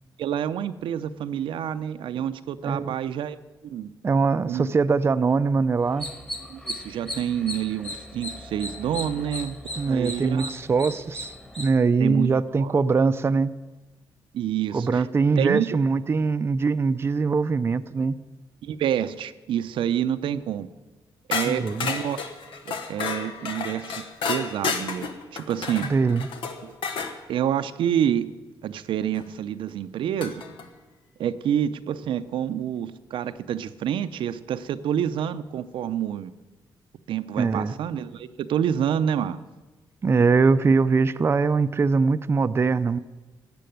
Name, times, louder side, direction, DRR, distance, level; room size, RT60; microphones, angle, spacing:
voice 1, 0.2-3.4 3.6-3.9 4.5-4.7 6.5-9.6 9.9-10.5 12.0-12.3 12.6-12.7 14.3-15.1 15.4-15.7 18.6-20.7 21.3-22.2 22.7-23.9 24.3-25.9 26.6-26.7 27.3-28.3 28.6-30.4 31.2-36.3 37.1-39.4, right 9 dB, 85° right, 11 dB, 0.6 m, -28 dB
voice 2, 2.6-3.0 4.0-6.1 9.8-13.5 14.7-18.2 21.5-21.9 25.8-26.3 37.4-37.7 40.0-43.0, right 4 dB, 30° right, 11 dB, 0.4 m, -22 dB
sound 1, 5.9-11.7, left 1 dB, 10° left, 1.4 m, -37 dB
sound 2, 21.3-27.2 29.1-29.2 30.2-30.7, left 5 dB, 90° left, 1.3 m, -31 dB
14.0 x 7.6 x 9.2 m, 1.2 s
cardioid pair, 115°, 8 cm